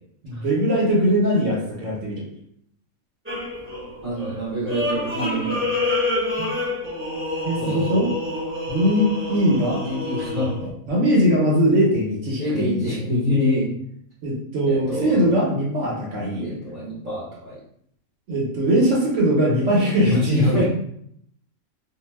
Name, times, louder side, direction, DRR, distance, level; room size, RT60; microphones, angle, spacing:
voice 1, 0.2-2.3 6.4-6.5 7.4-8.1 8.7-9.8 10.6-12.8 14.2-16.5 18.3-20.6, equal, 60° right, -3 dB, 1.1 m, -21 dB
sound 1, 3.3-10.7, left 2 dB, 20° right, 0.4 m, -27 dB
voice 2, 4.0-6.0 7.6-8.0 9.7-10.5 12.4-13.7 14.7-15.3 16.4-17.5 20.0-20.7, left 1 dB, 40° right, -9 dB, 0.9 m, -25 dB
2.6 x 2.1 x 3.2 m, 0.69 s
omnidirectional pair, 1.5 m